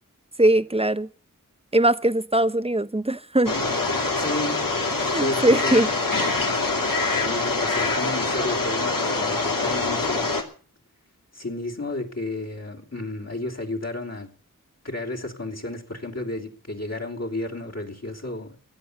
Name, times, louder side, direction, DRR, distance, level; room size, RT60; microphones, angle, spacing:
voice 1, 0.4-1.1 1.7-3.5 5.0-5.9, right 1 dB, 20° right, 0.9 m, -21 dB
sound 1, 3.5-10.4, left 3 dB, 80° left, 2.7 m, -24 dB
voice 2, 4.2-4.6 5.1-5.8 7.2-10.3 11.3-14.3 14.8-18.6, left 2 dB, 50° left, 3.3 m, -32 dB
16.5 x 10.5 x 6.8 m
wide cardioid pair, 45°, 33 cm